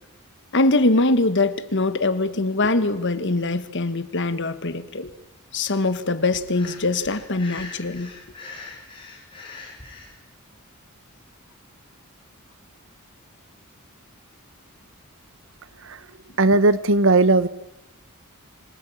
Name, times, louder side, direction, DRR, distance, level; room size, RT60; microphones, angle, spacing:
voice 1, 0.5-5.1 5.5-8.1, left 2 dB, 55° left, 1.6 m, -22 dB
Breathing, 6.5-10.1, left 3 dB, 25° left, 6.3 m, -42 dB
voice 2, 16.4-17.5, right 2 dB, 60° right, 1.1 m, -17 dB
25.5 x 18.5 x 8.8 m
head